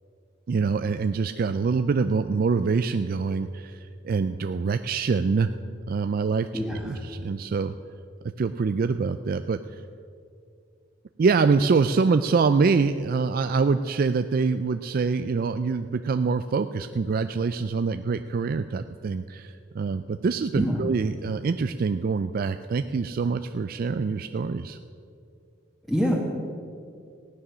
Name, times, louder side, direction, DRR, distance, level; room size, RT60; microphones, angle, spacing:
voice 1, 0.5-5.5 5.9-6.5 6.8-7.7 8.4-9.6 11.2-24.8, right 4 dB, 50° right, 10 dB, 0.4 m, -25 dB
voice 2, 6.5-7.0 20.5-20.8 25.9-26.1, equal, ahead, -4 dB, 1.5 m, -25 dB
15.5 x 9.9 x 6.1 m, 2.4 s
head